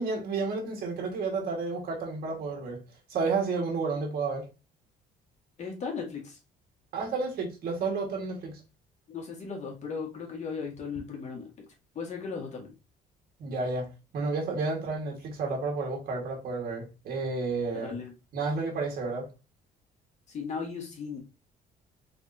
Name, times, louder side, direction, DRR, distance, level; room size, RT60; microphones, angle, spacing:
voice 1, 0.0-2.8 3.1-4.5 6.9-8.6 13.4-17.9 18.3-19.3, right 4 dB, 60° right, 1.7 m, -31 dB
voice 2, 5.6-6.4 9.1-11.5 12.0-12.7 17.7-18.1 20.3-21.2, left 5 dB, 45° left, 1.9 m, -36 dB
4.1 x 3.6 x 2.7 m
cardioid pair, 110°, 17 cm